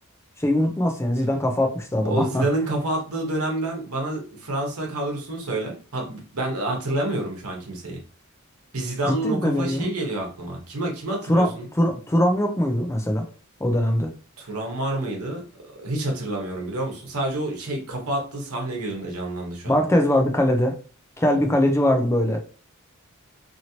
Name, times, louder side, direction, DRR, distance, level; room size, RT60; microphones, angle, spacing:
voice 1, 0.4-2.4 9.0-9.9 11.3-11.5 11.8-13.3 13.6-14.1 19.7-20.7 21.2-22.4, left 1 dB, 10° left, 4 dB, 0.4 m, -21 dB
voice 2, 2.0-8.0 8.7-11.7 14.4-15.4 15.8-19.8, right 1 dB, 85° right, 1 dB, 1.0 m, -28 dB
2.9 x 2.8 x 2.7 m, 0.37 s
head